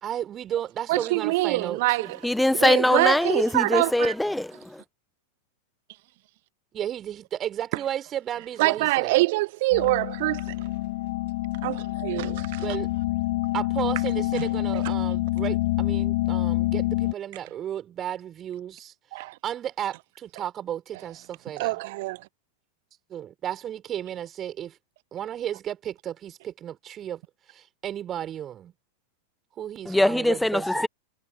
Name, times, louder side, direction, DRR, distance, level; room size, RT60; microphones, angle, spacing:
voice 1, 0.0-2.1 6.7-9.2 12.6-12.9 13.5-18.9 19.4-21.8 23.1-24.8 25.1-27.2 27.5-28.7 29.6-30.9, right 10 dB, 30° right, 4.3 m, -33 dB
voice 2, 0.9-4.1 8.6-10.7 11.6-12.6 14.3-14.4 14.7-14.9 19.1-19.4 21.6-22.3, right 21 dB, 50° right, 0.4 m, -25 dB
voice 3, 2.2-4.8 29.9-30.9, left 1 dB, 5° left, 1.1 m, -22 dB
sound 1, 9.7-17.1, left 19 dB, 50° left, 3.6 m, -27 dB
figure-of-eight pair, 90°, 0 cm